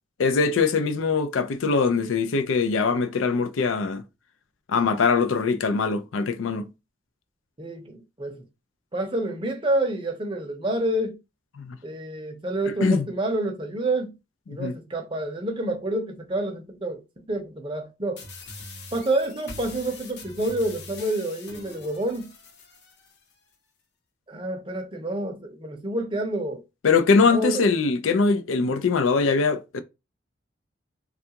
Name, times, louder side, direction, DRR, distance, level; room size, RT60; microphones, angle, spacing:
voice 1, 0.2-4.0 4.7-6.7 11.6-11.8 12.7-13.1 14.5-14.7 26.8-29.8, left 4 dB, 85° left, 0.4 m, -22 dB
voice 2, 7.6-8.4 8.9-11.1 11.8-14.1 14.5-18.2 18.9-22.3 24.3-26.6 27.3-27.6, right 1 dB, 25° right, 0.6 m, -28 dB
sound 1, 18.2-23.2, left 3 dB, 55° left, 0.7 m, -43 dB
3.4 x 2.3 x 2.8 m
head